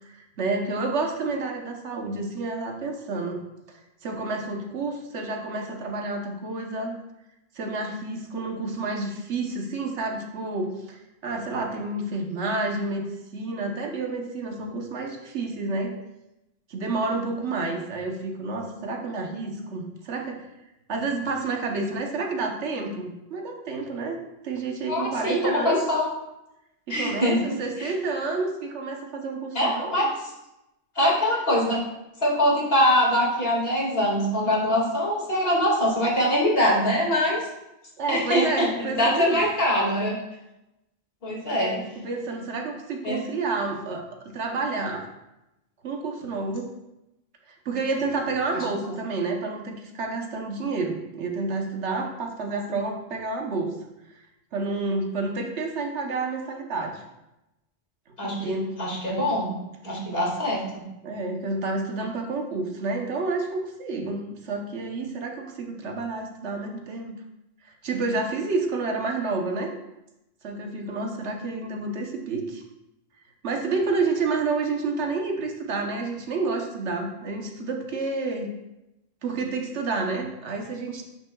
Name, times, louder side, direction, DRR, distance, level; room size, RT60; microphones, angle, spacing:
voice 1, 0.0-3.4 3.7-7.0 7.5-13.0 13.3-15.9 16.7-20.4 20.9-25.8 26.9-30.1 38.0-39.4 41.5-44.0 44.3-45.0 45.8-46.7 47.5-53.8 54.5-57.0 58.2-58.7 59.1-59.3 61.0-67.1 67.6-69.7 70.4-72.6 73.4-78.5 79.2-81.0, right 3 dB, 80° right, 2 dB, 1.2 m, -29 dB
voice 2, 24.9-26.0 26.9-27.4 27.8-27.9 29.5-30.1 31.0-31.8 32.2-37.4 38.1-40.1 41.2-41.7 43.0-43.2 52.7-52.8 58.2-59.5 59.8-60.6, left 1 dB, 55° left, -4 dB, 2.3 m, -23 dB
9.5 x 6.1 x 2.3 m, 0.93 s
omnidirectional pair, 1.2 m